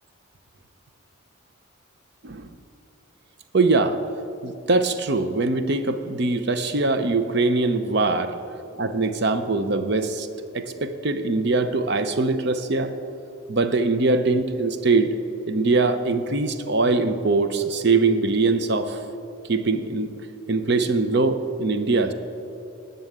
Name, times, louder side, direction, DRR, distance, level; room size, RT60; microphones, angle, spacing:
voice 1, 2.2-2.6 3.5-4.0 4.4-8.3 8.7-10.3 10.5-12.9 13.5-15.1 15.5-19.0 19.5-20.1 20.5-22.1, right 3 dB, 50° right, 10 dB, 0.7 m, -22 dB
11.0 x 6.9 x 9.1 m, 2.7 s
head